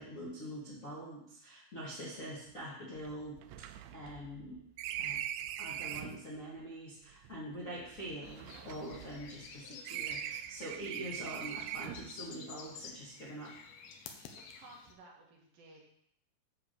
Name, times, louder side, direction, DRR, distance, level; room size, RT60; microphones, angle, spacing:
voice 1, 0.0-4.6 4.9-5.2 5.6-13.7, equal, 30° left, -8 dB, 1.5 m, -44 dB
sound 1, 2.1-2.2 2.5-2.6 3.0-6.3 7.1-9.5 9.8-12.2, right 11 dB, 85° right, 2.5 m, -42 dB
sound 2, 8.2-14.9, left 6 dB, 75° left, 2.7 m, -51 dB
voice 2, 14.5-15.8, right 2 dB, 65° right, -2 dB, 3.0 m, -56 dB
10.0 x 3.8 x 6.7 m, 0.72 s
omnidirectional pair, 4.8 m